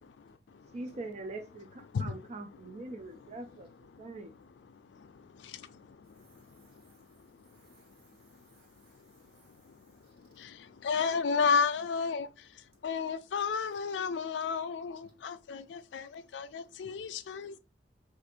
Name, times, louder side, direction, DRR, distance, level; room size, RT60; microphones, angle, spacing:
voice 1, 0.7-3.7 4.0-4.3, right 2 dB, 40° right, 0.4 m, -42 dB
voice 2, 6.2-10.1 11.0-11.1 14.0-14.1, right 3 dB, 60° right, 1.1 m, -66 dB
voice 3, 10.8-12.3 12.8-16.0 16.3-17.6, left 5 dB, 85° left, 0.4 m, -31 dB
2.6 x 2.5 x 4.2 m
head